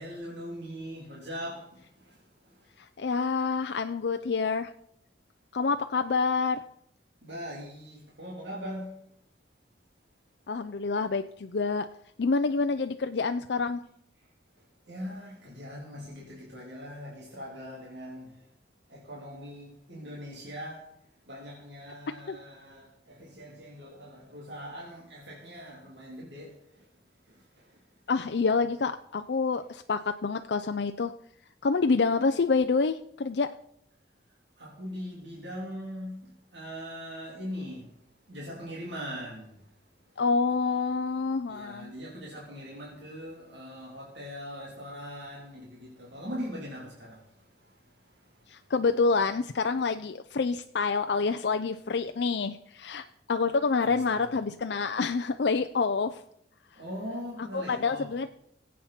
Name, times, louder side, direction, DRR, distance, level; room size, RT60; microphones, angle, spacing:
voice 1, 0.0-2.7 7.2-9.0 14.2-14.3 14.6-18.5 18.9-26.9 27.2-27.8 34.6-40.2 41.5-48.7 53.8-54.3 56.7-58.1, equal, 75° right, 3.3 m, -41 dB
voice 2, 2.8-4.7 5.5-6.6 10.5-11.9 12.2-13.8 22.3-22.4 28.1-31.1 31.6-33.5 40.2-41.9 48.5-56.2 57.4-58.3, left 4 dB, 65° left, 0.5 m, -27 dB
21.5 x 8.4 x 4.3 m
head